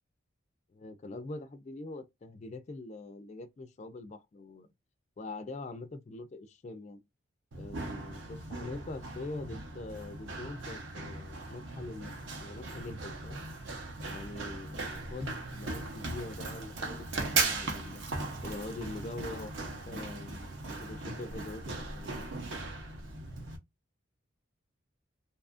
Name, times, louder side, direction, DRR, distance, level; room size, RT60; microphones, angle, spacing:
voice 1, 0.7-4.7 5.2-7.0 7.5-13.4 14.0-18.0 18.4-20.6 20.8-22.1, left 2 dB, 35° left, 0.3 m, -43 dB
Run, 7.5-23.6, right 3 dB, 60° right, 0.7 m, -38 dB
2.7 x 2.4 x 2.3 m
head